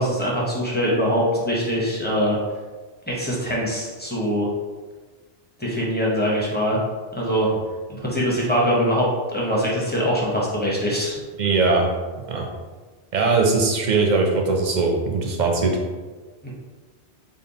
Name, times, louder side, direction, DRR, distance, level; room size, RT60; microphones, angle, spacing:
voice 1, 0.0-2.4 3.1-4.5 5.6-6.8 7.2-7.5 7.9-9.1 9.3-11.1 16.4-16.5, equal, 10° left, -5 dB, 0.6 m, -23 dB
voice 2, 11.4-11.9 12.3-12.5 13.1-15.8, right 3 dB, 55° right, 1 dB, 0.5 m, -20 dB
3.6 x 2.1 x 3.9 m, 1.3 s
omnidirectional pair, 1.2 m